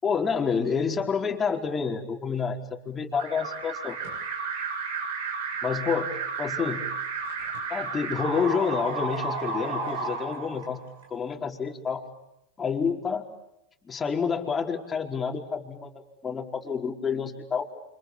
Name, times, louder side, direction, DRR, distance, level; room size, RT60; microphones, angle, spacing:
voice 1, 0.0-4.0 5.6-6.1 6.4-6.8 7.7-10.8 11.1-12.0 12.6-13.3 13.8-17.7, left 6 dB, 25° left, 1 dB, 4.7 m, -28 dB
Alarm, 3.1-11.0, right 4 dB, 75° right, 7.9 m, -32 dB
29.5 x 26.5 x 7.3 m, 0.86 s
hypercardioid pair, 105°, 0 cm